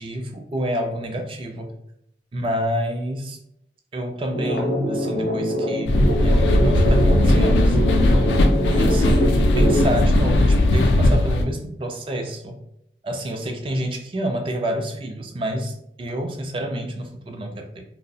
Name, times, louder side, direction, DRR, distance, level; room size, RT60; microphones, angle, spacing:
voice 1, 0.0-1.7 2.3-3.4 3.9-7.8 8.7-12.6 13.0-17.8, equal, 30° right, 4 dB, 0.3 m, -28 dB
sound 1, 4.4-9.8, equal, 55° left, 0.7 m, -24 dB
sound 2, 5.9-11.4, left 1 dB, 85° left, 0.4 m, -17 dB
2.7 x 2.0 x 2.5 m, 0.76 s
head